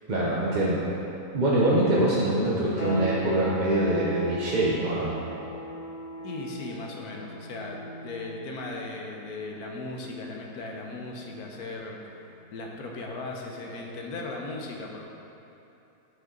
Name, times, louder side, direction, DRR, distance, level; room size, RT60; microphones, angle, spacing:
voice 1, 0.1-0.8 1.3-5.1, right 1 dB, 35° right, -7 dB, 0.9 m, -24 dB
sound 1, 2.8-13.3, equal, 45° left, 2.1 m, -40 dB
voice 2, 6.2-12.0 12.5-15.1, left 2 dB, 80° left, 0 dB, 1.4 m, -37 dB
8.0 x 6.9 x 3.8 m, 2.9 s
omnidirectional pair, 1.6 m